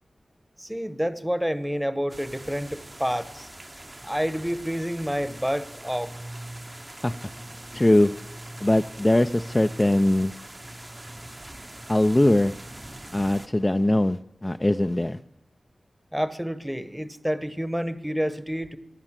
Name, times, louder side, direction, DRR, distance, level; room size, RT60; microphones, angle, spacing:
voice 1, 0.6-3.5 4.0-6.1 16.1-18.8, equal, 5° right, 13 dB, 1.0 m, -28 dB
sound 1, 2.1-13.5, right 1 dB, 25° right, 0.9 m, -42 dB
voice 2, 7.7-8.1 8.6-10.3 11.9-12.5 13.1-15.2, left 1 dB, 20° left, 8 dB, 0.4 m, -21 dB
15.0 x 11.5 x 7.4 m, 0.92 s
wide cardioid pair, 65°, 0 cm